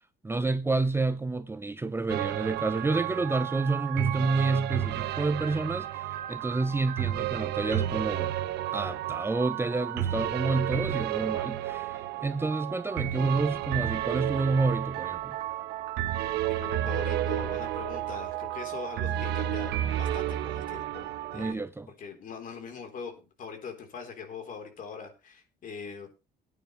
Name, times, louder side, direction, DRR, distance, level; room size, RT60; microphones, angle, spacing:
voice 1, 0.2-8.3 8.7-15.4 21.3-21.9, right 3 dB, 15° right, 0.7 m, -29 dB
sound 1, 2.1-21.5, right 12 dB, 80° right, 1.1 m, -32 dB
voice 2, 16.5-21.6 22.0-26.3, left 5 dB, 50° left, 3.8 m, -42 dB
19.5 x 9.3 x 3.2 m
cardioid pair, 110°, 17 cm